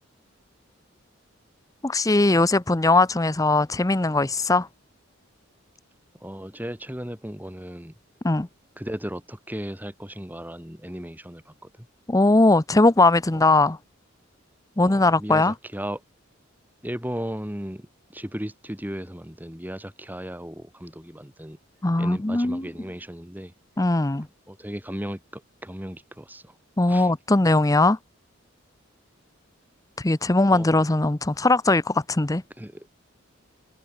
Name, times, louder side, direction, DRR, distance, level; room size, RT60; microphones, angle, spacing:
voice 1, 1.8-4.7 8.2-8.5 12.1-13.8 14.8-15.5 21.8-22.7 23.8-24.3 26.8-28.0 30.0-32.4, left 2 dB, 15° left, 0.7 m, -20 dB
voice 2, 6.2-7.9 8.8-11.9 14.8-16.0 16.8-17.9 18.1-21.6 22.0-23.5 24.5-26.5 26.9-27.1 30.5-30.9 32.6-32.9, equal, 10° right, 4.2 m, -36 dB
head